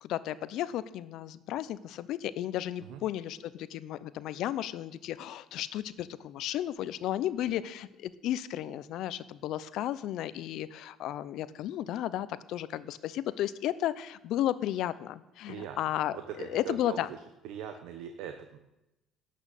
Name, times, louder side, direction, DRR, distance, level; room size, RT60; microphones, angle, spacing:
voice 1, 0.0-17.1, left 12 dB, 70° left, 16 dB, 0.6 m, -34 dB
voice 2, 15.5-15.8 16.1-17.2 17.4-18.6, right 9 dB, 80° right, 6 dB, 0.9 m, -41 dB
12.0 x 6.3 x 8.3 m, 0.93 s
cardioid pair, 110°, 0 cm